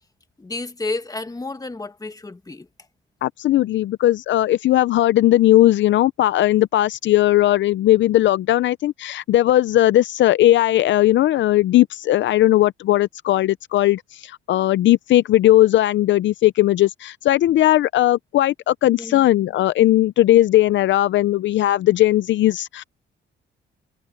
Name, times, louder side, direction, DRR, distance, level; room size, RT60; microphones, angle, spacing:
voice 1, 0.4-2.7 19.0-19.2, left 3 dB, 20° left, 1.9 m, -31 dB
voice 2, 3.2-22.8, left 14 dB, 70° left, 0.5 m, -17 dB
cardioid pair, 90°, 20 cm